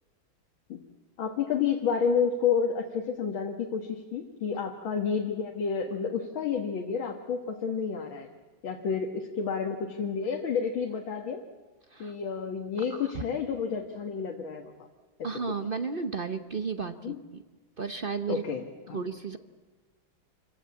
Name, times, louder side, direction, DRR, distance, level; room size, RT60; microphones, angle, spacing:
voice 1, 1.2-8.3 8.6-11.4 12.0-14.7 17.0-17.2 18.3-19.0, left 6 dB, 85° left, 3 dB, 2.3 m, -30 dB
voice 2, 12.9-13.2 15.2-17.4 17.8-18.4 18.9-19.4, right 5 dB, 45° right, 9 dB, 0.7 m, -33 dB
26.0 x 16.5 x 8.4 m, 1.4 s
omnidirectional pair, 2.1 m